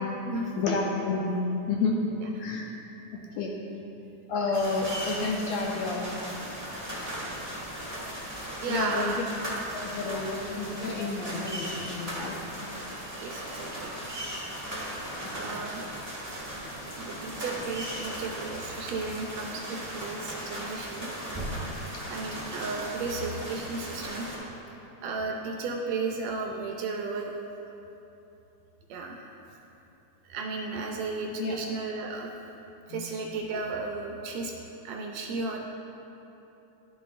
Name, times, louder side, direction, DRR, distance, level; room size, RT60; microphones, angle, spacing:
voice 1, 0.5-1.4 1.7-1.9 2.4-2.7 3.1-3.5 4.3-6.1 8.7-9.2 9.7-12.4 15.2-15.6 20.5-20.6 21.9-22.1 31.4-31.6 32.9-33.1, left 3 dB, 80° left, -1 dB, 1.6 m, -30 dB
sound 1, 4.5-24.4, equal, 10° right, 1.0 m, -37 dB
voice 2, 8.6-9.2 13.1-13.9 15.3-15.8 17.0-21.3 22.1-24.3 25.0-27.3 28.9-29.2 30.2-32.3 32.9-34.5 34.8-35.6, right 3 dB, 75° right, 1 dB, 1.7 m, -34 dB
11.5 x 6.9 x 2.5 m, 3.0 s
omnidirectional pair, 3.4 m